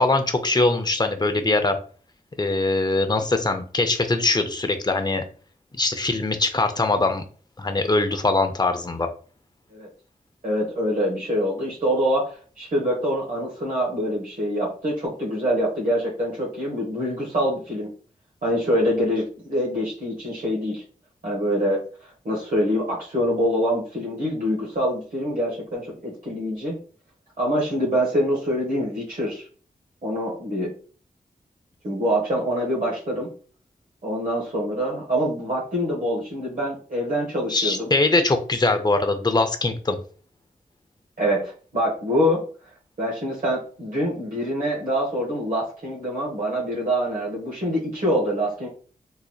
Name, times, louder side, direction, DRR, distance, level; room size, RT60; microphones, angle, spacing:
voice 1, 0.0-1.8 2.4-5.2 5.7-7.2 7.6-9.1 37.5-40.0, left 2 dB, 25° left, 6 dB, 0.6 m, -22 dB
voice 2, 10.4-17.9 18.4-20.8 21.2-21.8 22.2-26.8 27.4-29.4 30.0-30.7 31.8-33.3 34.0-37.9 41.2-42.4 43.0-48.7, equal, 65° right, -4 dB, 1.3 m, -25 dB
3.8 x 3.0 x 2.3 m, 0.41 s
cardioid pair, 60°, 15 cm